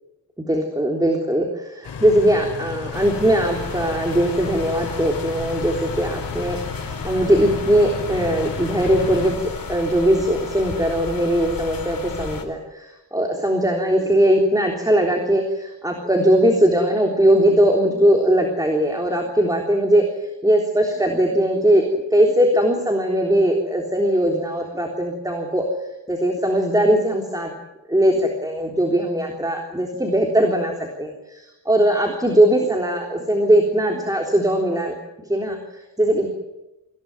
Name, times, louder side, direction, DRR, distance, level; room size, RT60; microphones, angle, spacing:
voice 1, 0.5-20.1 20.4-25.7 26.1-27.5 27.9-34.9 35.3-36.4, right 1 dB, 10° right, 1 dB, 3.5 m, -20 dB
sound 1, 1.8-9.3, left 5 dB, 85° left, 4.7 m, -33 dB
sound 2, 2.9-12.4, left 4 dB, 55° left, 4.6 m, -33 dB
26.0 x 16.5 x 9.5 m, 0.99 s
wide cardioid pair, 120°, 40 cm